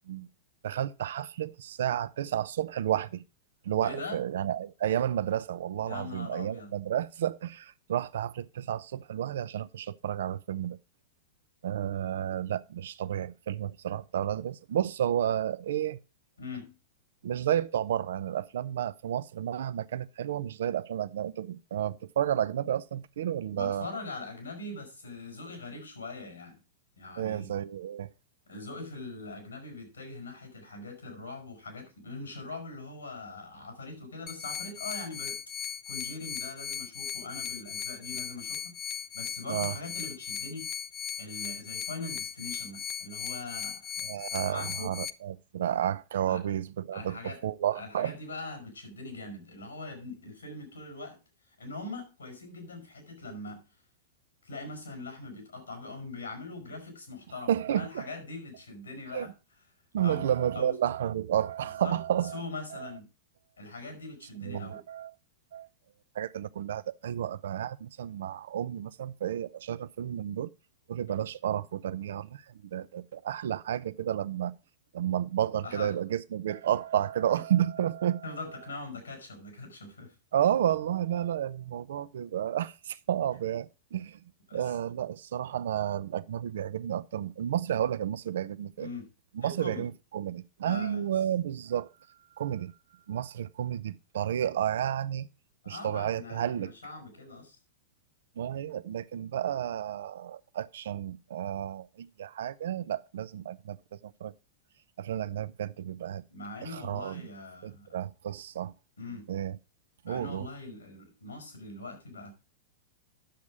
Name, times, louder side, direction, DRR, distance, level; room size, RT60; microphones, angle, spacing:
voice 1, 0.6-3.2 3.6-10.8 11.6-16.0 17.2-23.9 27.2-28.1 39.5-39.8 44.0-48.1 57.5-58.2 59.1-59.3 59.9-62.4 62.7-62.9 64.4-65.1 65.5-65.7 66.1-70.5 70.9-74.5 74.9-78.3 80.3-84.2 84.5-88.9 89.4-91.9 92.4-92.7 93.1-95.3 95.7-96.7 98.4-103.8 104.0-104.3 105.0-106.2 106.6-107.3 107.6-108.7 109.3-109.6 110.0-110.5, right 10 dB, 65° right, 0.6 m, -31 dB
voice 2, 3.8-4.2 5.9-6.7 16.4-16.7 23.5-26.6 27.0-27.5 28.5-40.7 41.2-43.8 44.5-44.9 46.3-46.4 46.9-47.4 47.7-51.2 51.6-53.6 54.4-59.3 60.0-60.8 61.6-62.0 62.3-63.1 63.6-64.8 71.1-71.2 75.6-76.0 78.2-80.1 84.5-84.6 88.8-89.1 89.4-89.9 90.6-91.0 95.6-97.6 106.3-108.0 109.0-109.3 110.0-112.3, left 3 dB, 85° left, 5.1 m, -42 dB
sound 1, 34.3-45.1, left 8 dB, 30° left, 0.6 m, -37 dB
10.0 x 7.3 x 4.7 m
figure-of-eight pair, 100°, 0 cm